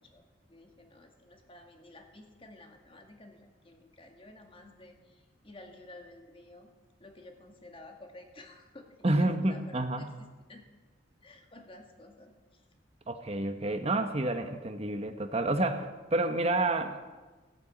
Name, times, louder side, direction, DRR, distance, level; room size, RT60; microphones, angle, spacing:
voice 1, 0.0-6.7 7.0-10.7 11.2-12.7, left 2 dB, 30° left, 4 dB, 1.9 m, -52 dB
voice 2, 9.0-10.1 13.1-17.0, right 2 dB, 35° right, 7 dB, 1.0 m, -29 dB
15.5 x 8.8 x 8.5 m, 1.2 s
head